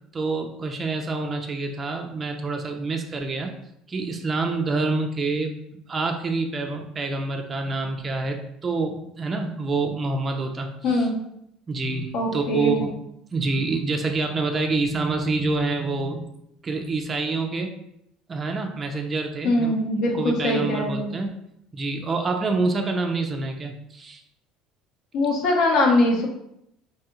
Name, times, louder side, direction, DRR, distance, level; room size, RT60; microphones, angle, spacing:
voice 1, 0.1-3.5 3.9-5.5 5.9-11.1 11.7-12.9 13.3-16.3 16.6-17.7 18.3-19.7 20.1-21.3 21.7-24.2, right 3 dB, 25° right, 3 dB, 0.3 m, -27 dB
voice 2, 10.8-11.2 12.1-12.9 19.4-21.2 25.1-26.3, left 2 dB, 60° left, 0 dB, 0.7 m, -22 dB
2.6 x 2.3 x 2.8 m, 0.78 s
cardioid pair, 125°, 0 cm